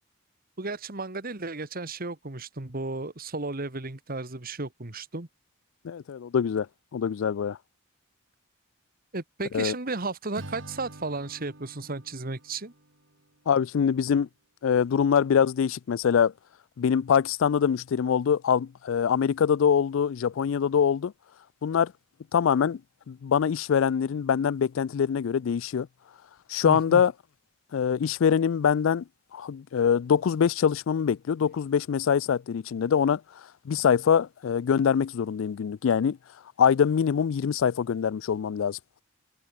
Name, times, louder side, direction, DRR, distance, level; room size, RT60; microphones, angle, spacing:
voice 1, 0.6-5.3 9.1-12.7 26.6-27.0, right 3 dB, 45° right, 1.8 m, -34 dB
voice 2, 5.8-6.7 6.9-7.6 9.5-9.7 13.5-14.3 14.6-16.3 16.8-21.1 21.6-21.9 22.3-22.8 23.1-25.9 26.5-27.1 27.7-29.0 29.3-33.2 33.7-36.2 36.6-38.8, left 7 dB, 65° left, 0.4 m, -24 dB
Acoustic guitar / Strum, 10.3-13.6, right 1 dB, 65° right, 2.8 m, -47 dB
head